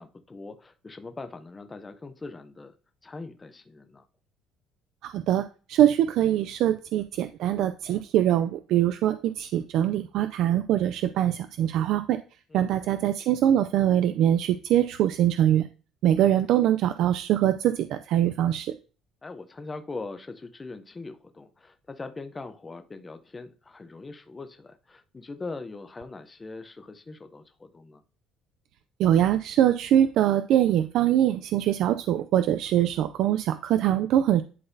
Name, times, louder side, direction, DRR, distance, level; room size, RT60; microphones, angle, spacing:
voice 1, 0.0-2.7 3.0-4.0 12.5-12.7 19.2-28.0, left 3 dB, 15° left, 8 dB, 0.7 m, -41 dB
voice 2, 5.0-12.2 12.5-15.7 16.0-18.7 29.0-34.4, right 11 dB, 65° right, 11 dB, 0.4 m, -23 dB
11.0 x 3.9 x 2.7 m, 0.36 s
cardioid pair, 140°, 0 cm